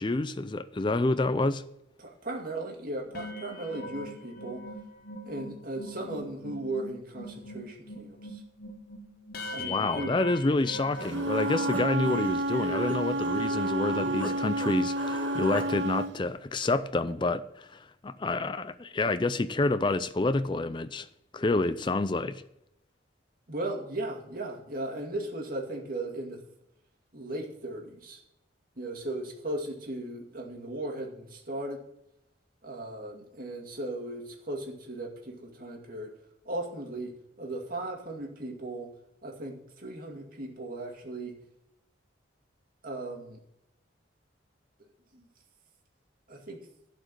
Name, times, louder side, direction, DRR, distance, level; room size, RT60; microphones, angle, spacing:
voice 1, 0.0-1.6 9.6-21.1 21.3-22.4, left 2 dB, 25° left, 12 dB, 0.4 m, -28 dB
voice 2, 2.0-4.6 5.2-8.4 9.5-10.1 23.5-26.4 27.1-28.2 28.8-31.8 32.6-36.1 36.4-38.9 39.2-41.3 42.8-43.4 45.1-45.3 46.3-46.6, right 1 dB, 45° right, 1 dB, 2.3 m, -37 dB
sound 1, 3.0-12.5 13.0-13.1 13.4-13.7, left 1 dB, 50° left, 1.1 m, -42 dB
Human voice, 11.0-14.3 14.6-15.7, equal, 10° left, 1.5 m, -38 dB
Wind instrument woodwind instrument, 11.0-16.1, right 1 dB, 70° right, 0.6 m, -30 dB
11.5 x 5.1 x 8.8 m, 0.81 s
head